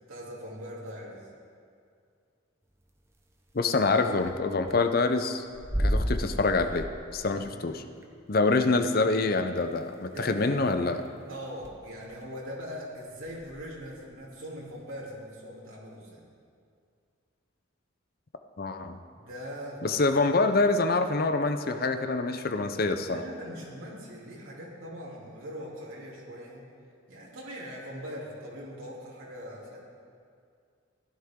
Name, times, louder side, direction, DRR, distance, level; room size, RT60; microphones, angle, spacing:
voice 1, 0.1-1.2 7.3-7.6 10.1-10.5 11.3-16.2 19.1-19.8 23.1-26.6 27.1-29.8, equal, 80° right, -5 dB, 3.0 m, -41 dB
voice 2, 3.5-5.4 5.8-6.9 7.1-7.8 8.3-11.0 18.6-19.0 19.8-23.2, left 3 dB, 45° left, 8 dB, 0.6 m, -26 dB
sound 1, 3.5-3.6 3.8-3.9 4.2-4.3 4.7-4.9 5.5-7.4 8.0-8.1 8.9-9.0 9.9-10.0 10.3-10.4 10.8-11.1 11.6-11.7 12.1-12.3 13.2-14.2, equal, 15° right, 0.7 m, -32 dB
15.5 x 11.0 x 3.7 m, 2.3 s
head